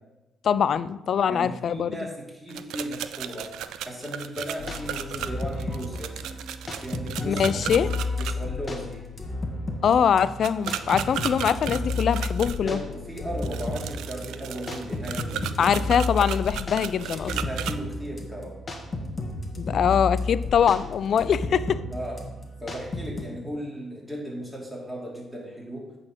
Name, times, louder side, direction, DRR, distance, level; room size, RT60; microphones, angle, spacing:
voice 1, 0.4-1.9 7.2-7.9 9.8-12.8 15.6-17.3 19.6-21.8, left 8 dB, 60° left, 16 dB, 0.3 m, -23 dB
voice 2, 1.3-3.6 3.8-6.2 6.7-7.6 8.2-9.0 12.6-15.9 17.0-18.6 21.9-22.2 22.6-25.9, equal, 5° right, -4 dB, 2.9 m, -36 dB
sound 1, 2.5-8.3 10.4-12.6 13.4-17.7, right 11 dB, 85° right, 0.4 m, -35 dB
sound 2, 4.6-23.2, left 2 dB, 30° left, 1.5 m, -32 dB
8.8 x 4.2 x 6.1 m, 1.0 s
cardioid pair, 90°, 0 cm